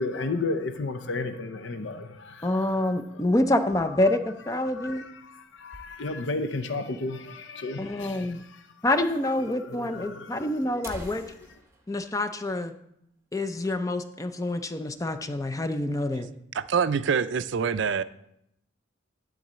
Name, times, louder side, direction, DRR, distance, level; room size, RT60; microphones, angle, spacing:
voice 1, 0.0-2.8 3.1-3.2 4.6-8.7 9.5-11.3, left 3 dB, 65° left, 0.6 m, -34 dB
voice 2, 2.4-5.0 7.8-8.4 8.8-11.2 11.9-12.7 13.3-16.3, left 1 dB, 15° left, 0.4 m, -27 dB
sound 1, 5.1-6.5 6.8-6.9 7.1-7.2 7.9-8.0 8.9-9.0 9.3-9.4 10.2-10.3 10.6-13.2 13.5-13.7 14.1-14.3 14.7-15.3, right 1 dB, 15° right, 0.9 m, -47 dB
voice 3, 16.5-18.0, right 6 dB, 65° right, 0.4 m, -25 dB
11.5 x 3.9 x 7.4 m
head